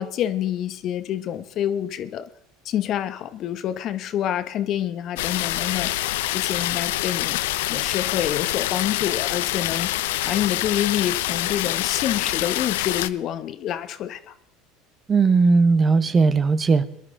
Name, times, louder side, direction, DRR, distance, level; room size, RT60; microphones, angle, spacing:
voice 1, 0.0-2.3 2.6-6.0 6.3-7.4 7.7-9.9 10.2-14.3, left 11 dB, 50° left, 12 dB, 0.9 m, -27 dB
sound 1, 5.2-13.1, left 16 dB, 80° left, 0.4 m, -26 dB
voice 2, 15.1-16.9, right 4 dB, 30° right, 13 dB, 0.9 m, -18 dB
22.0 x 11.0 x 3.8 m, 0.72 s
hypercardioid pair, 85°, 0 cm